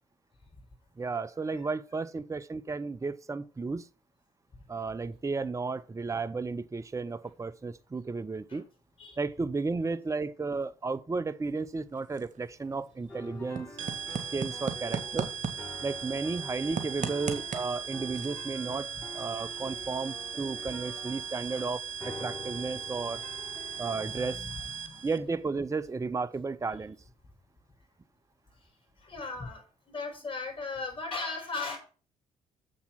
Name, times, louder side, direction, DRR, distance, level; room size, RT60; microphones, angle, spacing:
voice 1, 1.0-3.9 4.7-8.7 9.2-13.7 14.3-15.3 15.8-18.9 19.1-23.2 23.8-24.4 25.0-27.0, right 4 dB, 20° right, 0.6 m, -33 dB
sound 1, 11.4-23.1, right 5 dB, 50° right, 1.7 m, -41 dB
sound 2, 13.1-24.4, left 2 dB, 10° left, 5.1 m, -47 dB
sound 3, 13.8-25.2, right 7 dB, 85° right, 0.7 m, -39 dB
voice 2, 16.6-17.0 17.3-17.4 19.5-19.6 21.4-21.7 23.6-25.1 29.0-31.8, left 3 dB, 30° left, 5.3 m, -39 dB
7.1 x 6.2 x 7.5 m
hypercardioid pair, 45°, 16 cm